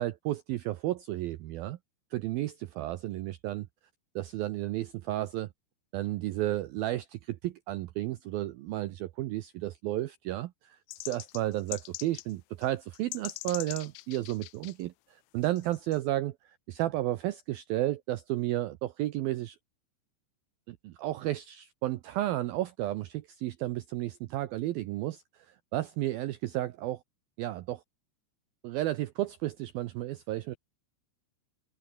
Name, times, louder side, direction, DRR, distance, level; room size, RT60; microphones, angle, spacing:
voice 1, 0.0-1.8 2.1-3.7 4.2-5.5 5.9-19.6 20.7-27.0 27.4-27.8 28.6-30.6, right 15 dB, 80° right, 2.1 m, -33 dB
sound 1, 10.9-12.3 12.6-12.7 12.9-14.7 15.4-16.0, left 22 dB, 90° left, 3.1 m, -42 dB
omnidirectional pair, 5.3 m